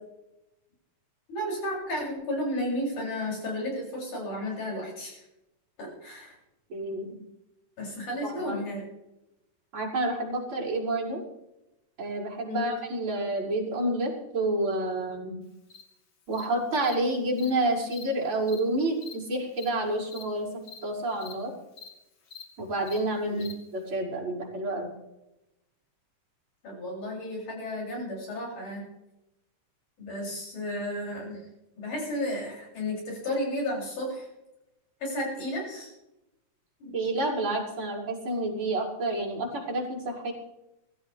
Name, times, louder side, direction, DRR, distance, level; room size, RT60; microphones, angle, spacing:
voice 1, 1.3-5.2 5.8-6.4 7.8-8.8 12.4-12.7 23.2-23.5 26.6-28.8 30.0-31.5 31.8-34.3 35.0-35.9 36.8-37.0, left 1 dB, 65° left, -3 dB, 8.6 m, -33 dB
voice 2, 6.7-7.1 8.2-8.6 9.7-11.2 12.0-15.4 16.3-21.5 22.6-23.5 23.7-24.9 36.9-40.3, right 1 dB, 35° right, -6 dB, 6.7 m, -29 dB
Cricket, 15.7-15.8 16.3-16.4 16.8-16.9 17.4-17.5 17.9-18.0 18.5-18.6 19.0-19.1 19.6-19.7 20.1-20.2 20.7-20.8 21.2-21.3 21.8-21.9 22.3-22.4 22.9-23.0 23.4-23.5, left 5 dB, 40° left, 2.1 m, -44 dB
23.5 x 14.5 x 3.4 m, 0.92 s
omnidirectional pair, 3.8 m